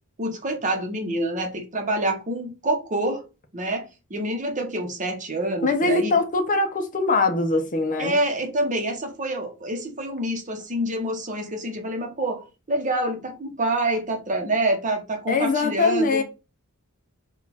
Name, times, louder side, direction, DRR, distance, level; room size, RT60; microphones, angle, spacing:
voice 1, 0.2-3.2 3.5-6.2 8.0-16.2, right 1 dB, 35° right, 0.9 m, -27 dB
voice 2, 5.6-8.2 15.3-16.2, left 3 dB, 40° left, 0.7 m, -22 dB
4.1 x 2.4 x 4.2 m
head